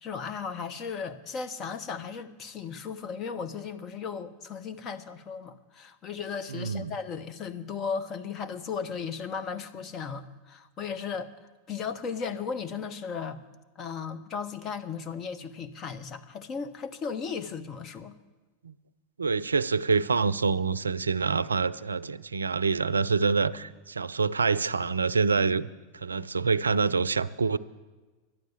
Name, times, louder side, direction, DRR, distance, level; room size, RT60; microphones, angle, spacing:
voice 1, 0.0-11.3 11.7-13.4 13.8-18.2, left 6 dB, 35° left, 9 dB, 1.0 m, -36 dB
voice 2, 6.5-7.0 18.6-18.7 19.2-25.7 25.9-27.6, right 4 dB, 85° right, 18 dB, 0.4 m, -26 dB
12.0 x 9.3 x 7.3 m, 1.3 s
hypercardioid pair, 90°, 0 cm